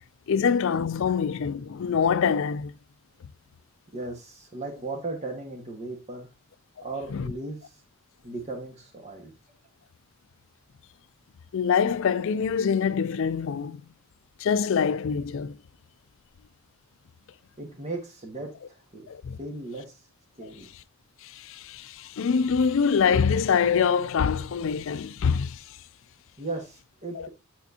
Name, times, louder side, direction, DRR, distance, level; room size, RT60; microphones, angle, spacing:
voice 1, 0.3-2.8 6.8-6.9 7.1-7.3 11.5-13.8 14.4-15.6 19.1-19.4 21.2-25.8 27.2-27.3, left 6 dB, 65° left, 0.4 m, -25 dB
voice 2, 3.9-6.3 6.8-7.8 8.2-9.3 17.6-19.1 19.4-20.0 20.3-20.7 26.4-27.3, right 2 dB, 30° right, 1.6 m, -37 dB
8.6 x 4.4 x 2.8 m
head